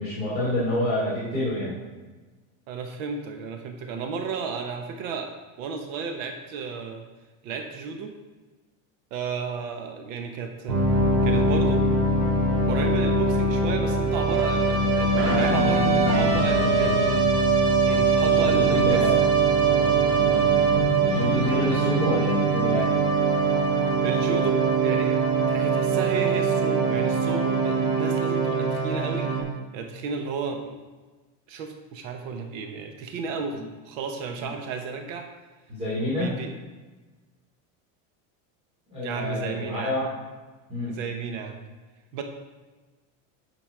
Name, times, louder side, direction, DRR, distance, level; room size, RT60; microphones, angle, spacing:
voice 1, 0.0-1.8 18.2-19.2 19.7-20.6 20.9-23.0 33.5-33.6 34.4-34.5 35.7-36.4 38.9-40.1 40.7-41.0, left 1 dB, 15° right, -9 dB, 2.8 m, -28 dB
voice 2, 2.7-5.3 5.6-7.0 7.4-8.2 9.1-10.8 11.2-11.8 12.7-17.0 17.8-19.0 24.0-25.2 25.5-29.3 29.7-30.8 31.5-35.3 36.1-36.5 39.0-40.0 40.9-41.6 42.1-42.2, right 5 dB, 70° right, 4 dB, 1.1 m, -33 dB
sound 1, 10.7-29.4, right 3 dB, 85° right, 3.1 m, -22 dB
9.1 x 6.1 x 4.8 m, 1.3 s
cardioid pair, 160°, 40 cm